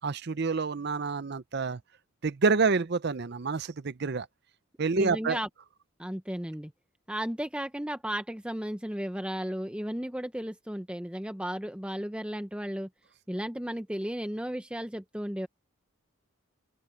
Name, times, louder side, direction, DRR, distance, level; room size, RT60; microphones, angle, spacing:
voice 1, 0.0-1.8 2.2-4.3 4.8-5.4, right 4 dB, 50° right, 0.6 m, -28 dB
voice 2, 5.0-5.5 6.0-6.7 7.1-12.9 13.3-15.5, equal, 5° right, 0.7 m, -34 dB
open air
head